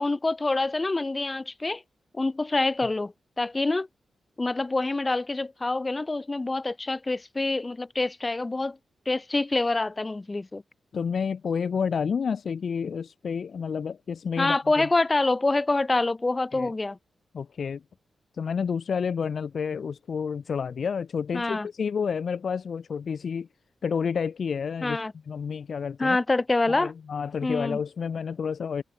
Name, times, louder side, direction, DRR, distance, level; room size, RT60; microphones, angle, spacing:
voice 1, 0.0-1.8 2.1-3.9 4.4-8.8 9.1-10.6 14.4-17.0 21.3-21.7 24.8-25.1 26.0-26.9 27.4-27.8, left 2 dB, 30° left, 5.3 m, -26 dB
voice 2, 10.9-14.9 16.5-16.7 17.3-17.8 18.3-23.5 23.8-25.0 25.3-26.2 26.7-28.8, left 6 dB, 65° left, 0.9 m, -30 dB
cardioid pair, 55°, 0 cm